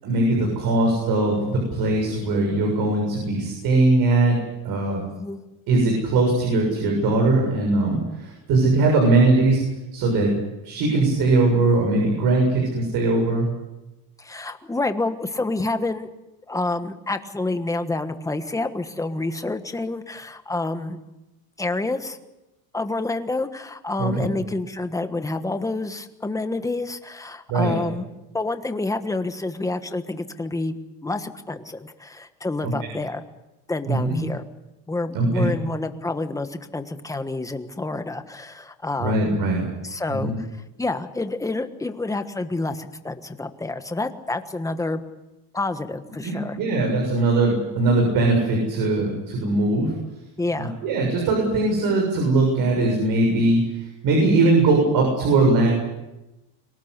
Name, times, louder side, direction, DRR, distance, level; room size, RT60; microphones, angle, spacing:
voice 1, 0.0-4.4 4.6-5.0 5.7-9.6 9.9-10.3 10.6-13.5 24.0-24.3 27.5-27.7 33.9-34.2 35.1-35.5 39.0-39.6 40.1-40.3 46.2-49.9 50.6-55.7, right 2 dB, 60° right, 1 dB, 7.2 m, -20 dB
voice 2, 5.1-5.4 14.2-16.1 16.5-21.0 21.6-22.2 22.7-28.1 28.3-33.2 33.7-34.4 34.9-39.3 39.8-40.5 40.8-45.0 45.5-46.6 50.4-50.7, left 2 dB, 10° left, 8 dB, 1.4 m, -28 dB
24.5 x 19.0 x 8.2 m, 0.99 s
cardioid pair, 145°, 39 cm